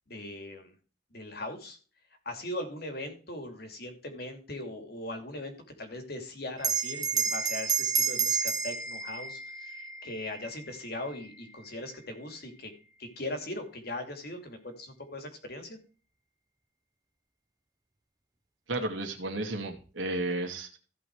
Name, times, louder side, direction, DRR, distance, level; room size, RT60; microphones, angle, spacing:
voice 1, 0.1-0.7 1.1-1.8 2.2-12.7 13.0-15.8, left 1 dB, 55° left, 5 dB, 2.7 m, -39 dB
Bell, 6.6-11.5, right 6 dB, 20° right, 1.0 m, -31 dB
voice 2, 18.7-20.8, right 2 dB, 90° right, 3 dB, 2.3 m, -33 dB
15.5 x 5.3 x 4.7 m, 0.37 s
head